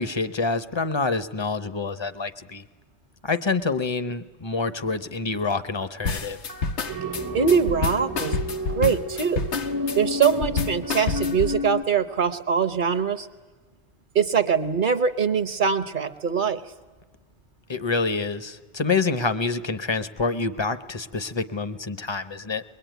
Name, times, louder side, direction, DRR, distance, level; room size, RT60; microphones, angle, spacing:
voice 1, 0.0-2.6 3.2-6.4 17.7-22.6, left 4 dB, 30° left, 12 dB, 0.7 m, -27 dB
sound 1, 4.8-5.1 5.8-5.9 6.2-6.3 6.5-11.8, left 1 dB, 20° right, 0.7 m, -31 dB
sound 2, 6.1-11.6, left 4 dB, 85° left, 1.3 m, -28 dB
voice 2, 7.3-8.4 8.7-9.5 10.0-13.3 14.1-16.6, right 6 dB, 50° right, 9 dB, 1.0 m, -23 dB
22.5 x 22.0 x 9.2 m, 1.4 s
omnidirectional pair, 1.1 m